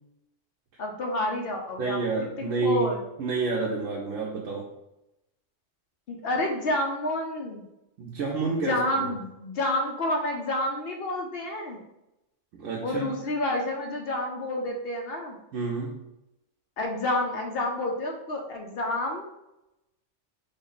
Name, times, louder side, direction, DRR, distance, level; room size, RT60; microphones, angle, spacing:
voice 1, 0.8-2.0 2.6-3.0 6.1-7.6 8.5-11.8 12.8-15.4 16.8-19.2, left 1 dB, 60° left, 2 dB, 0.7 m, -29 dB
voice 2, 1.8-2.9 3.2-4.7 8.0-9.1 12.6-13.1 15.5-16.0, right 3 dB, 90° right, -3 dB, 1.0 m, -29 dB
3.6 x 2.0 x 3.9 m, 0.88 s
omnidirectional pair, 1.3 m